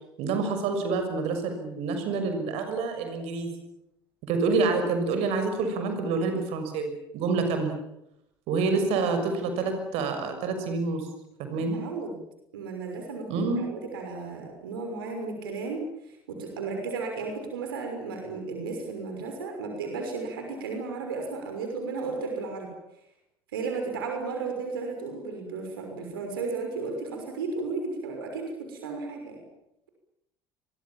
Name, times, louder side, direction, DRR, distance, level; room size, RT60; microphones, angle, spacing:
voice 1, 0.2-3.5 4.3-7.8 8.5-11.1 11.4-11.8 13.3-13.6, right 4 dB, 55° right, 6 dB, 6.5 m, -27 dB
voice 2, 11.5-12.2 12.5-22.7 23.5-29.4, right 4 dB, 75° right, 3 dB, 6.0 m, -34 dB
29.0 x 24.0 x 7.4 m, 0.82 s
figure-of-eight pair, 65°, 12 cm